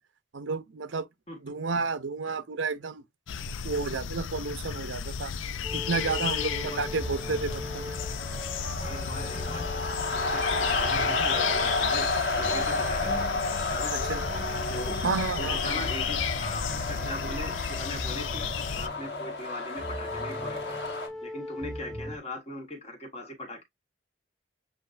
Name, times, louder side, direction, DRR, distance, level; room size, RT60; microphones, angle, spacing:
voice 1, 0.3-1.1 1.4-3.0 3.6-5.3 5.7-8.0 13.9-14.2 15.0-15.8, right 4 dB, 75° right, 0.6 m, -31 dB
sound 1, 3.3-18.9, left 7 dB, 75° left, 0.5 m, -33 dB
sound 2, 5.6-22.2, left 1 dB, 5° left, 0.5 m, -41 dB
voice 2, 6.2-6.8 8.8-12.1 12.3-13.3 13.7-13.9 14.7-14.9 15.4-18.5 18.7-20.8 21.2-23.6, left 1 dB, 30° left, 1.5 m, -40 dB
sound 3, 6.3-21.1, left 2 dB, 60° left, 1.5 m, -32 dB
7.8 x 2.6 x 2.5 m
head